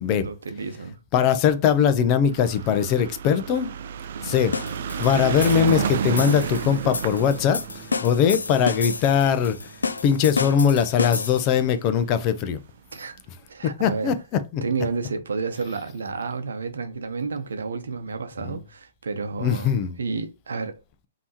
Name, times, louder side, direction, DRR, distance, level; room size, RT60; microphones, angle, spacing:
voice 1, 0.0-1.0 4.1-4.5 12.9-13.2 13.5-14.1 14.6-20.8, right 4 dB, 75° right, 0.8 m, -31 dB
voice 2, 1.1-3.7 4.2-4.5 5.0-7.6 8.0-9.6 10.0-12.6 13.6-14.1 14.5-14.6 18.5-18.6 19.4-20.0, left 8 dB, 35° left, 0.6 m, -21 dB
sound 1, 2.3-10.8 11.6-11.7 11.9-12.0 12.2-12.3, right 7 dB, 60° right, 0.4 m, -31 dB
sound 2, 4.5-11.6, left 4 dB, 85° left, 0.4 m, -31 dB
Bass guitar, 5.5-11.8, right 4 dB, 10° right, 1.9 m, -44 dB
5.4 x 2.9 x 2.9 m
hypercardioid pair, 130°, 0 cm